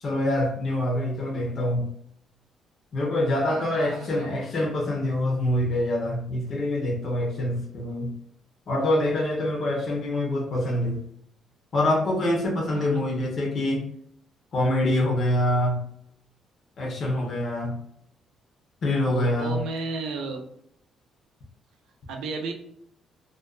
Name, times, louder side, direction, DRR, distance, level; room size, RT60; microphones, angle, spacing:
voice 1, 0.0-1.9 2.9-8.1 8.7-11.0 11.7-13.9 14.5-15.8 16.8-17.8 18.8-19.6, left 1 dB, 45° left, 0 dB, 0.7 m, -25 dB
voice 2, 3.5-4.7 12.7-13.0 19.1-20.4 22.1-22.5, right 3 dB, 90° right, 2 dB, 0.5 m, -34 dB
2.4 x 2.2 x 2.3 m, 0.71 s
cardioid pair, 155°, 0 cm